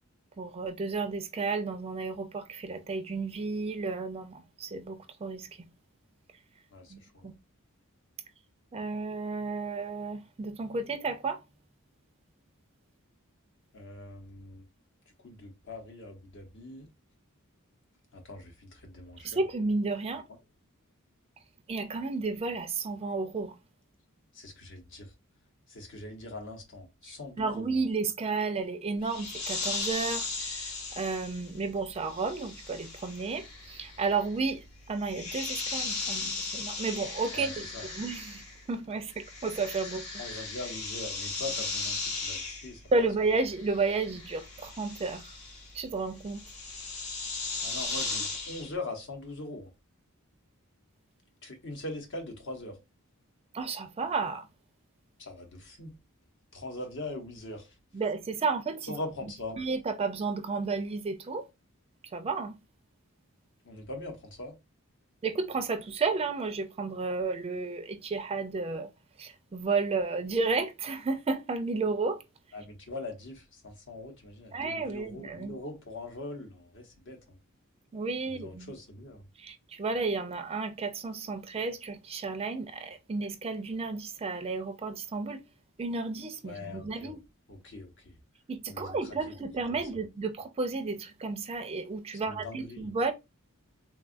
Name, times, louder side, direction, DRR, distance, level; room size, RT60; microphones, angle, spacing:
voice 1, 0.4-5.7 6.9-7.4 8.7-11.4 19.2-20.2 21.7-23.6 27.0-38.4 38.7-40.0 42.9-45.4 45.7-46.5 53.5-54.5 57.9-59.0 59.6-61.5 62.1-62.6 65.2-68.9 69.2-72.2 74.5-75.5 77.9-78.7 79.4-85.4 85.8-87.2 88.5-93.1, right 4 dB, 25° right, 0.4 m, -32 dB
voice 2, 6.7-7.3 13.7-14.6 15.2-16.9 18.1-19.4 20.1-20.2 24.3-25.1 25.7-27.8 37.3-37.9 40.2-43.1 47.6-49.7 51.4-52.8 55.2-56.0 56.5-57.7 58.9-59.6 63.6-64.5 72.5-77.4 78.2-79.2 86.4-87.1 87.5-88.2 88.7-89.2 89.7-89.8 92.1-92.9, left 2 dB, 60° left, 0.9 m, -42 dB
sound 1, 29.0-38.8 39.0-48.7, left 3 dB, 90° left, 1.0 m, -37 dB
3.5 x 2.3 x 2.5 m
head